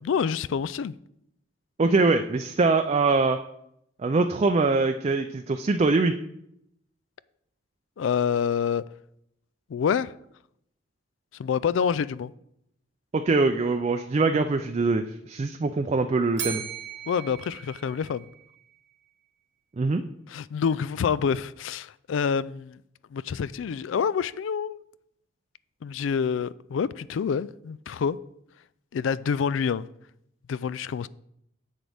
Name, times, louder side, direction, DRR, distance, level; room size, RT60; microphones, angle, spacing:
voice 1, 0.0-0.9 8.0-8.8 9.7-10.1 11.4-12.3 17.1-18.3 20.3-22.8 23.1-24.8 25.8-28.2 28.9-29.9 30.5-31.1, left 6 dB, 80° left, 0.3 m, -27 dB
voice 2, 1.8-3.4 4.0-6.1 13.1-16.6 19.8-20.0, right 3 dB, 35° right, 0.4 m, -23 dB
Bell, 16.4-18.6, right 10 dB, 65° right, 1.1 m, -37 dB
10.0 x 7.4 x 3.4 m
head